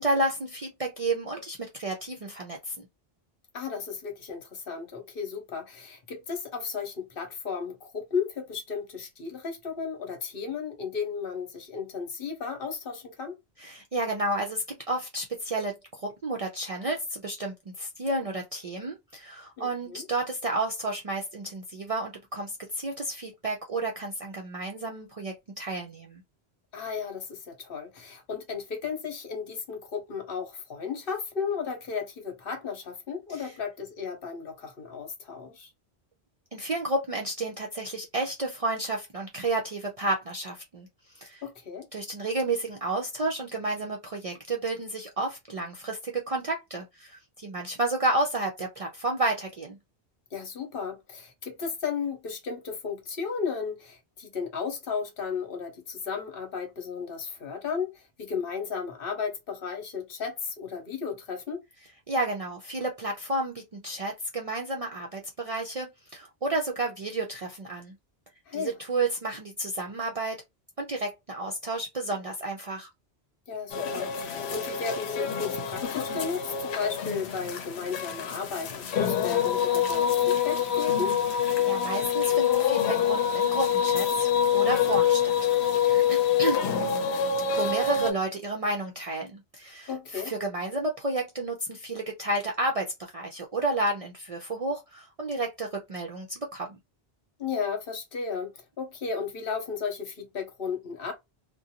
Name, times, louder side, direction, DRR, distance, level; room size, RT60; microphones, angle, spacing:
voice 1, 0.0-2.9 13.6-26.2 33.3-33.5 36.5-40.9 41.1-41.4 41.9-49.8 62.1-67.9 68.5-70.4 70.8-72.9 81.6-85.4 85.9-86.6 87.6-96.8, right 2 dB, 50° right, 0.4 m, -31 dB
voice 2, 3.5-13.3 19.6-20.1 26.7-35.7 41.4-41.9 50.3-61.6 68.5-68.8 73.5-81.1 89.9-90.3 97.4-101.1, left 6 dB, 60° left, 1.0 m, -34 dB
sound 1, 73.7-88.1, left 8 dB, 80° left, 0.8 m, -26 dB
2.4 x 2.1 x 2.8 m
omnidirectional pair, 1.1 m